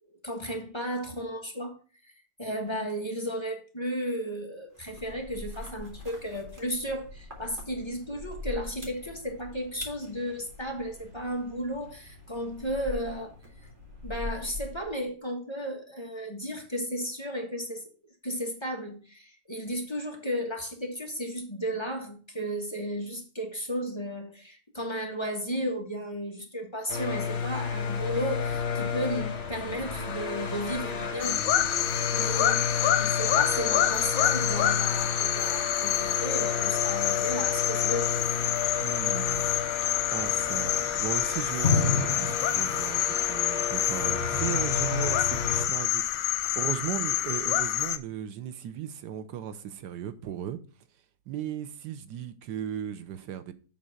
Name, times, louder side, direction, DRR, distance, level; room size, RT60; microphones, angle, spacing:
voice 1, 0.2-2.1 2.4-13.3 14.0-17.9 18.2-31.4 31.7-38.1, equal, 15° left, 1.4 m, -34 dB
sound 1, 4.7-15.1, left 2 dB, 30° right, 2.2 m, -43 dB
sound 2, 26.9-45.7, left 5 dB, 45° left, 1.3 m, -31 dB
sound 3, 31.2-48.0, left 12 dB, 65° left, 0.9 m, -27 dB
voice 2, 38.8-39.5 40.1-50.6 51.3-53.5, right 10 dB, 85° right, 1.4 m, -37 dB
7.4 x 4.1 x 6.4 m
omnidirectional pair, 1.8 m